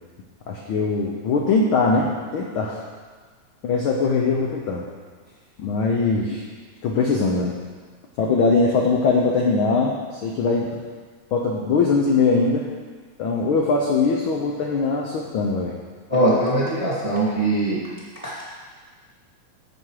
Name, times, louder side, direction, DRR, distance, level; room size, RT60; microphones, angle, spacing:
voice 1, 0.5-2.8 3.6-4.8 5.6-6.4 6.8-7.5 8.2-10.7 11.3-12.7 13.2-15.7, left 4 dB, 70° left, -1 dB, 1.2 m, -21 dB
voice 2, 16.1-17.8, right 1 dB, 15° right, -6 dB, 1.5 m, -21 dB
15.0 x 5.3 x 4.8 m, 1.5 s
omnidirectional pair, 3.3 m